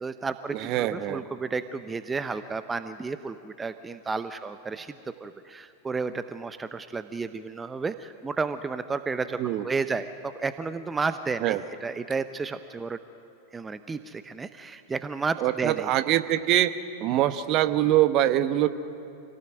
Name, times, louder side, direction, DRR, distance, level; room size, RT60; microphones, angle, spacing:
voice 1, 0.0-13.0 13.5-15.9, right 4 dB, 15° right, 12 dB, 0.7 m, -32 dB
voice 2, 0.5-1.2 9.4-9.6 11.4-11.6 15.4-16.7 17.0-18.7, right 13 dB, 40° right, 12 dB, 1.0 m, -23 dB
26.5 x 18.0 x 9.1 m, 2.7 s
figure-of-eight pair, 90°, 0 cm